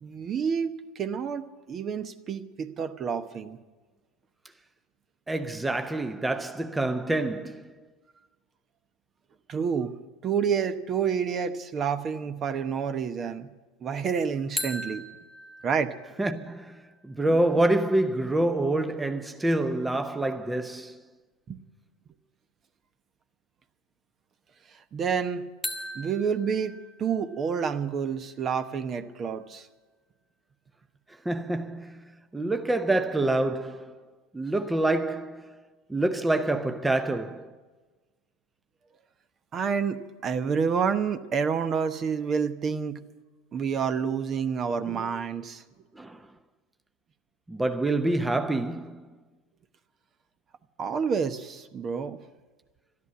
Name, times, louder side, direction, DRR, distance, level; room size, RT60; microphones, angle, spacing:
voice 1, 0.0-3.6 9.5-10.0 10.2-13.5 13.8-15.0 15.6-15.9 21.5-21.6 24.7-25.4 25.9-29.7 39.5-43.0 43.5-45.6 50.8-52.2, right 6 dB, 40° right, 0.9 m, -29 dB
voice 2, 5.3-7.8 16.2-21.0 31.2-34.0 34.3-35.6 35.9-37.6 45.9-46.3 47.5-49.1, right 2 dB, 10° right, 0.8 m, -27 dB
sound 1, 14.6-18.4 25.6-29.5, left 1 dB, 5° left, 1.6 m, -41 dB
12.5 x 11.0 x 8.4 m
hypercardioid pair, 90°, 0 cm